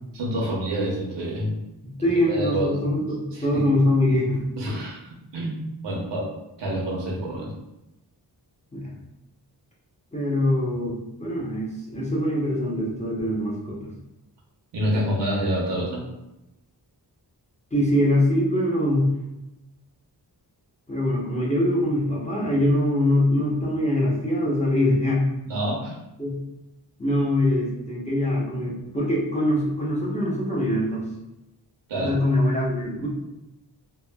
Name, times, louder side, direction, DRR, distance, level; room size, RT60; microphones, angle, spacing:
voice 1, 0.1-1.6 2.0-2.7 3.3-3.6 4.6-6.3 6.6-7.5 14.7-16.1 25.5-26.0 31.9-32.1, equal, 85° right, -3 dB, 0.8 m, -27 dB
voice 2, 1.8-4.4 8.7-8.9 10.1-13.9 17.7-19.1 20.9-25.2 26.2-26.3 27.0-31.1 32.0-33.1, left 1 dB, 15° left, -6 dB, 0.6 m, -23 dB
3.0 x 2.1 x 2.2 m, 0.91 s
wide cardioid pair, 125°, 41 cm